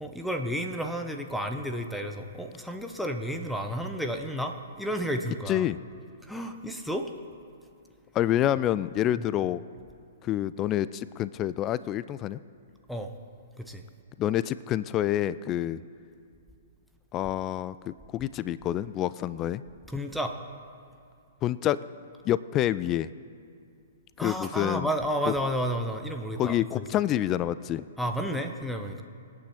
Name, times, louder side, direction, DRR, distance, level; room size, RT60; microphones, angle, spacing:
voice 1, 0.0-5.7 6.2-7.1 9.2-9.3 12.9-13.1 13.6-13.8 19.9-20.4 24.2-26.9 28.0-29.0, equal, ahead, 4 dB, 0.9 m, -31 dB
voice 2, 5.5-5.8 8.1-9.6 10.2-12.4 14.2-15.8 17.1-19.6 21.4-21.8 22.2-23.1 24.2-24.9 25.3-25.4 26.4-27.8, left 12 dB, 25° left, 17 dB, 0.3 m, -27 dB
25.5 x 9.0 x 4.4 m, 2.5 s
figure-of-eight pair, 115°, 0 cm